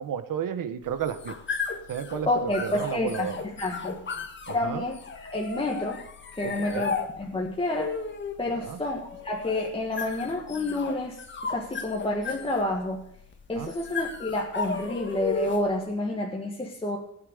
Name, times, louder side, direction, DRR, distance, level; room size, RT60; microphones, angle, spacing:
voice 1, 0.0-1.3 1.9-3.4 4.5-4.8 6.4-6.9 8.5-8.8 13.5-13.7, right 8 dB, 65° right, 11 dB, 1.5 m, -32 dB
sound 1, 0.8-15.8, left 4 dB, 30° left, 1.6 m, -35 dB
voice 2, 2.2-3.3 3.6-4.0 4.5-6.0 6.3-7.9 8.4-11.2 11.4-13.0 13.5-17.0, left 2 dB, 15° left, -1 dB, 1.7 m, -29 dB
15.5 x 9.0 x 6.8 m, 0.72 s
cardioid pair, 130°, 35 cm